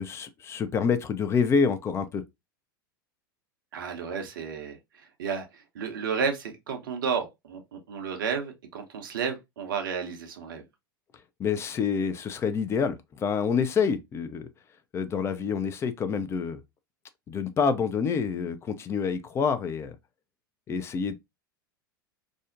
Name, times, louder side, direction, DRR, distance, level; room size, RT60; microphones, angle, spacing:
voice 1, 0.0-2.2 11.4-14.5 14.9-16.6 17.3-20.0 20.7-21.2, left 6 dB, 20° left, 0.4 m, -27 dB
voice 2, 3.7-10.6, right 6 dB, 65° right, 0.6 m, -32 dB
2.5 x 2.1 x 2.4 m
figure-of-eight pair, 85°, 12 cm